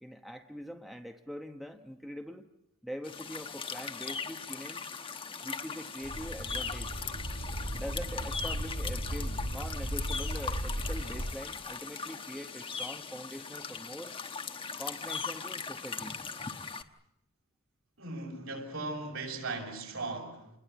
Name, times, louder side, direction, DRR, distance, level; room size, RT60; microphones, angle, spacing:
voice 1, 0.0-2.5 2.8-4.8 5.4-6.9 7.7-14.2 14.8-16.2, equal, ahead, 5 dB, 0.9 m, -43 dB
sound 1, 3.0-16.8, left 5 dB, 25° left, 1.0 m, -39 dB
sound 2, 6.0-11.3, equal, 85° right, 2.5 m, -36 dB
voice 2, 18.0-20.5, right 3 dB, 65° right, 1 dB, 7.2 m, -38 dB
28.5 x 21.0 x 8.3 m, 0.85 s
head